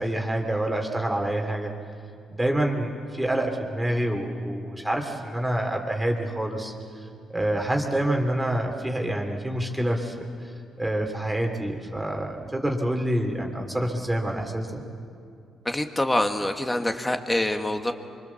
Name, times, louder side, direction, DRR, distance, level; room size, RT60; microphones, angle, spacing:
voice 1, 0.0-1.7 2.4-6.7 7.3-10.5 10.8-14.8, right 1 dB, 10° right, 1 dB, 3.0 m, -27 dB
voice 2, 15.7-17.9, left 1 dB, 15° left, 6 dB, 1.8 m, -25 dB
25.0 x 24.5 x 7.2 m, 2.5 s
cardioid pair, 90°, 0 cm